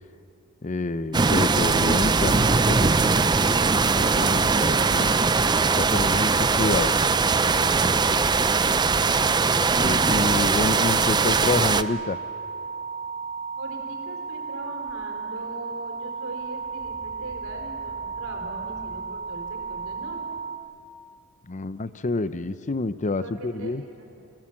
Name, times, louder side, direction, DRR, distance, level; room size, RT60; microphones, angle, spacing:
voice 1, 0.6-5.1 5.7-6.9 9.8-12.2 21.5-23.8, left 3 dB, 35° left, 14 dB, 0.6 m, -28 dB
sound 1, 1.1-11.8, right 4 dB, 20° right, 0.5 m, -21 dB
sound 2, 9.8-20.6, right 5 dB, 60° left, 2.9 m, -34 dB
voice 2, 13.6-20.2 23.2-24.1, right 2 dB, 70° right, 2 dB, 4.3 m, -41 dB
sound 3, 14.9-15.0 15.4-15.9 16.2-20.2, equal, 15° left, 3.5 m, -50 dB
29.0 x 17.0 x 7.4 m, 2.6 s
head